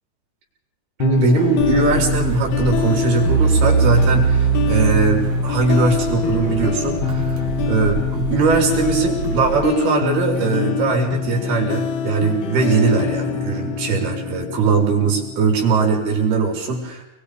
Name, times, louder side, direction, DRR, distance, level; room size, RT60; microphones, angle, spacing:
sound 1, 1.0-16.0, left 8 dB, 70° left, 3.2 m, -25 dB
voice 1, 1.0-7.4 7.7-17.0, right 4 dB, 60° right, 1 dB, 5.8 m, -20 dB
sound 2, 1.6-9.6, right 4 dB, 45° right, 2.7 m, -22 dB
29.0 x 21.5 x 5.1 m, 0.87 s
omnidirectional pair, 5.0 m